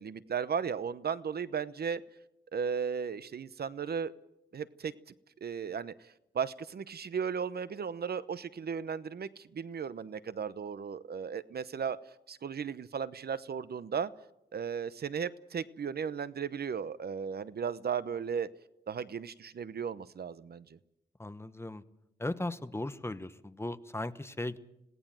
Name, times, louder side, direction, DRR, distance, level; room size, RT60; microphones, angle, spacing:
voice 1, 0.0-2.0 2.5-4.1 4.5-4.9 5.4-12.0 12.3-14.1 14.5-18.5 18.9-20.6, right 7 dB, 65° right, 16 dB, 0.9 m, -35 dB
voice 2, 21.2-21.8 22.2-24.6, left 2 dB, 15° left, 12 dB, 1.1 m, -37 dB
26.5 x 18.0 x 7.5 m, 0.84 s
wide cardioid pair, 115°, 18 cm